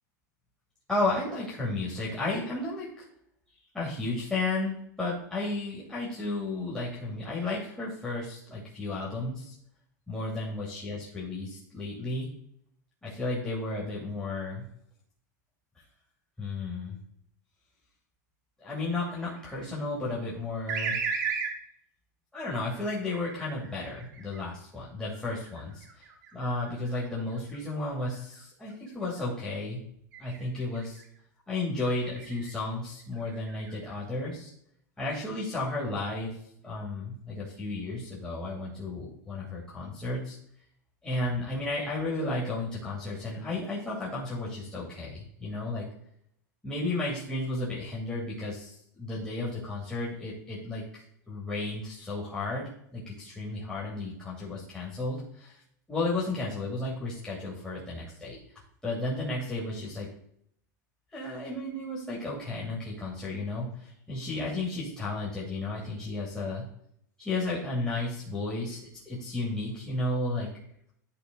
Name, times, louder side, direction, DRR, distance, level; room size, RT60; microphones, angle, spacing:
voice 1, 0.9-3.1 3.7-9.5 10.1-12.3 13.0-14.7 16.4-17.0 18.6-21.0 22.3-29.8 30.2-31.0 31.5-34.5 35.0-36.4 36.6-40.4 41.0-45.9 46.6-51.0 51.3-55.6 55.9-58.4 58.8-60.1 61.1-66.7 67.2-70.5, left 2 dB, 5° left, -7 dB, 2.6 m, -33 dB
sound 1, 18.9-19.7 20.7-21.6 22.6-24.4 25.1-28.4 28.9-29.2 30.1-31.0 31.8-32.5 33.0-33.9, right 6 dB, 75° right, 2.0 m, -37 dB
12.0 x 4.1 x 3.9 m, 0.70 s
supercardioid pair, 125°, 10 cm